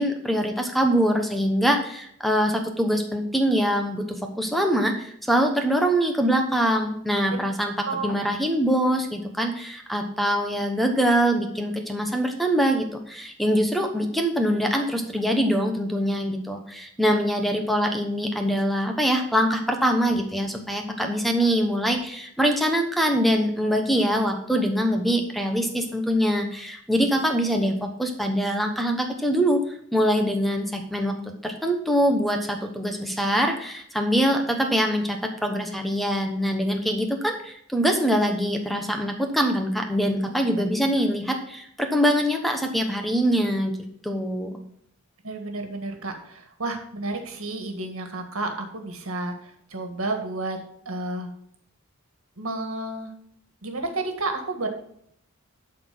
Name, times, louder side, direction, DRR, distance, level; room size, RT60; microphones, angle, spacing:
voice 1, 0.0-29.6 29.9-31.1 31.4-43.7 44.0-44.5, equal, ahead, 4 dB, 1.0 m, -24 dB
voice 2, 45.2-49.3 49.7-50.6 50.8-51.3 52.4-53.1 53.6-54.7, right 2 dB, 80° right, 5 dB, 1.7 m, -31 dB
11.5 x 4.3 x 5.9 m, 0.69 s
head